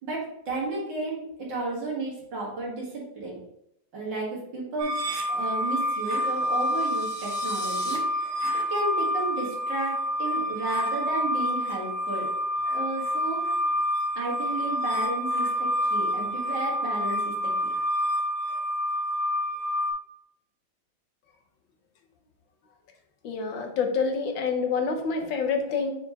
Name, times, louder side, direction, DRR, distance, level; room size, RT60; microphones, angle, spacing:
voice 1, 0.0-3.4 3.9-4.9 5.3-8.3 8.5-12.3 12.6-13.5 14.2-17.3 17.6-17.7, right 2 dB, 65° right, -4 dB, 2.7 m, -33 dB
sound 1, 4.8-19.9, equal, 85° right, 1.8 m, -28 dB
sound 2, 6.1-8.0, left 1 dB, 5° left, 0.9 m, -42 dB
voice 2, 23.2-25.9, left 5 dB, 75° left, 4 dB, 1.6 m, -27 dB
5.8 x 4.7 x 3.8 m, 0.78 s
omnidirectional pair, 2.1 m